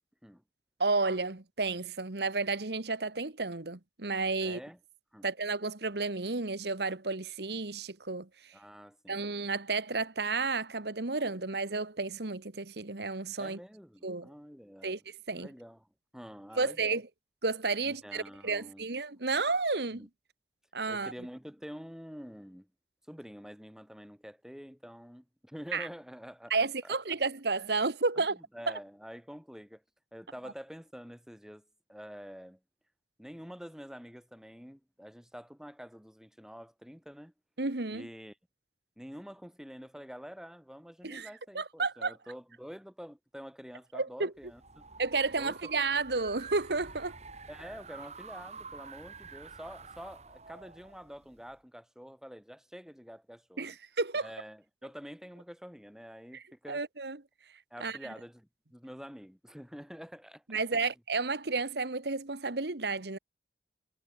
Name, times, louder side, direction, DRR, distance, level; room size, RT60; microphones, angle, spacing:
voice 1, 0.8-4.6 5.2-8.3 9.1-13.6 14.0-14.3 14.8-15.0 15.3-15.5 16.6-17.0 17.4-20.1 20.7-21.1 25.7-25.9 26.5-28.4 37.6-38.1 41.0-41.3 41.5-42.1 43.9-44.3 45.0-47.2 53.6-54.3 56.3-57.2 57.8-58.0 60.5-63.2, right 3 dB, 65° right, 1.5 m, -32 dB
voice 2, 4.4-4.8 5.1-5.3 8.5-9.3 13.4-15.0 15.3-17.0 17.8-18.9 19.9-20.1 20.9-22.7 23.1-26.5 26.8-27.0 28.2-29.8 30.1-32.6 33.2-37.3 37.9-38.4 39.0-44.6 45.4-45.8 47.5-53.8 54.2-56.8 57.7-60.4 60.7-60.9, equal, 5° right, 3.8 m, -47 dB
sound 1, 44.4-51.6, right 4 dB, 40° right, 5.6 m, -49 dB
head